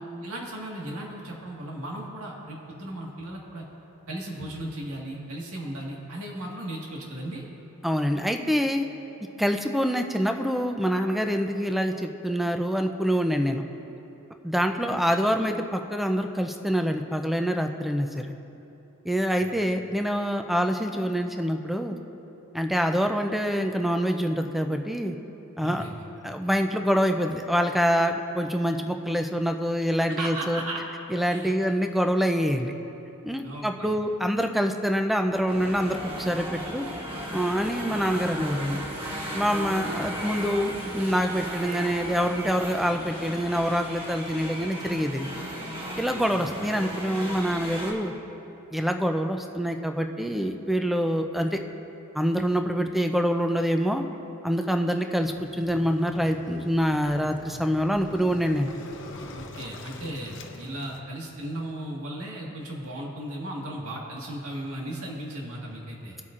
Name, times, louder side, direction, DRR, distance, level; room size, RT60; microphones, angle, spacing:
voice 1, 0.2-3.6 4.1-7.5 19.4-19.5 25.6-26.0 30.1-30.8 31.3-31.5 33.4-34.0 46.3-46.5 59.3-66.2, right 1 dB, 80° right, -2 dB, 1.7 m, -36 dB
voice 2, 7.8-8.9 9.4-13.6 14.4-18.3 19.0-22.0 22.5-25.2 25.6-25.8 26.2-30.6 31.1-32.7 33.2-36.9 37.3-38.8 39.3-45.3 46.0-48.1 48.7-51.6 52.1-54.0 54.4-58.7, equal, ahead, 5 dB, 0.5 m, -26 dB
sound 1, 35.5-47.9, equal, 25° right, 1.5 m, -35 dB
Waves surf, 55.2-61.0, left 2 dB, 55° left, 0.9 m, -44 dB
21.0 x 8.2 x 2.5 m, 3.0 s
head